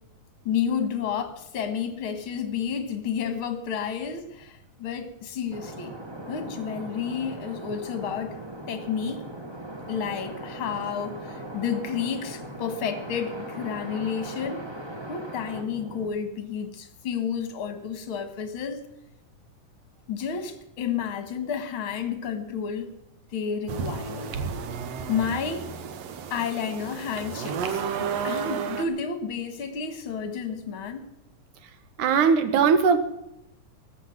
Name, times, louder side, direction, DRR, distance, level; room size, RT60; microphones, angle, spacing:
voice 1, 0.5-5.9 6.3-8.4 8.7-9.2 9.9-14.6 15.1-18.8 20.1-22.9 23.3-24.3 25.1-25.7 26.3-31.0, left 7 dB, 50° left, 9 dB, 2.0 m, -31 dB
sound 1, 5.5-16.1, right 1 dB, 20° right, 0.8 m, -39 dB
sound 2, 23.7-28.9, right 6 dB, 65° right, 2.0 m, -32 dB
voice 2, 32.0-33.0, right 6 dB, 80° right, 10 dB, 2.8 m, -19 dB
14.0 x 7.9 x 8.9 m, 0.83 s
omnidirectional pair, 3.5 m